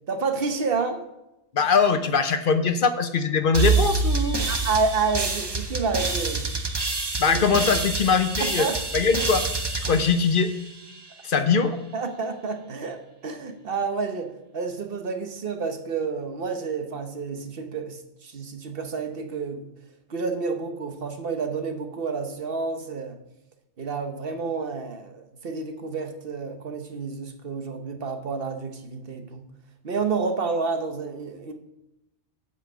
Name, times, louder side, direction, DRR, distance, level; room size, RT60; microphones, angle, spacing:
voice 1, 0.1-1.0 4.5-6.5 7.2-7.4 8.4-8.8 11.9-19.7 20.1-23.2 23.8-29.5 29.8-31.5, right 4 dB, 55° right, 6 dB, 1.2 m, -29 dB
voice 2, 1.5-4.5 7.2-8.7 8.9-9.4 9.8-10.5 11.2-11.7, left 5 dB, 55° left, 9 dB, 0.9 m, -21 dB
sound 1, 3.5-11.0, right 4 dB, 25° right, 0.8 m, -27 dB
8.1 x 5.6 x 7.7 m, 0.91 s
omnidirectional pair, 1.2 m